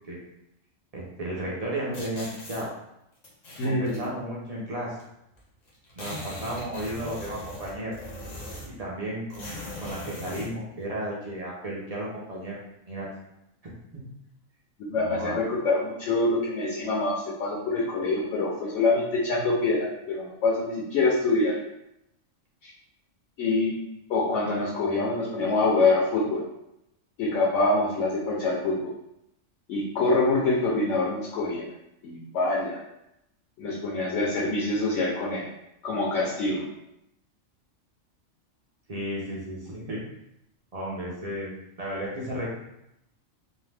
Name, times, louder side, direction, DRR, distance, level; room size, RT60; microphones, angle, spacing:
voice 1, 0.9-2.7 3.6-5.0 6.0-7.9 8.6-9.5 9.8-12.6 12.9-13.1 13.6-14.0 15.0-15.4 38.9-40.0 40.7-42.5, right 1 dB, 50° right, -4 dB, 0.4 m, -34 dB
sound 1, 1.9-2.6 3.2-4.1 5.0-5.1 5.3-5.4 5.7-8.8 9.3-10.5, left 1 dB, 45° left, 0.6 m, -39 dB
voice 2, 3.6-4.0 14.8-21.6 22.6-22.7 23.4-23.7 24.1-26.4 27.2-28.8 29.7-31.7 32.0-32.8 33.6-35.4 35.8-36.6, left 3 dB, 70° left, -4 dB, 0.9 m, -25 dB
2.7 x 2.0 x 3.2 m, 0.84 s
omnidirectional pair, 1.4 m